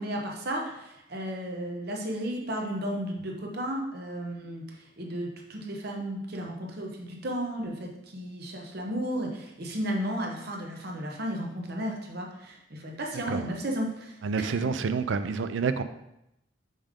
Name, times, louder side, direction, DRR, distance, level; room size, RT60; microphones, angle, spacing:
voice 1, 0.0-14.7, equal, 50° right, 0 dB, 0.9 m, -34 dB
voice 2, 14.2-15.8, right 5 dB, 65° right, 11 dB, 0.4 m, -28 dB
5.4 x 4.9 x 3.6 m, 0.84 s
head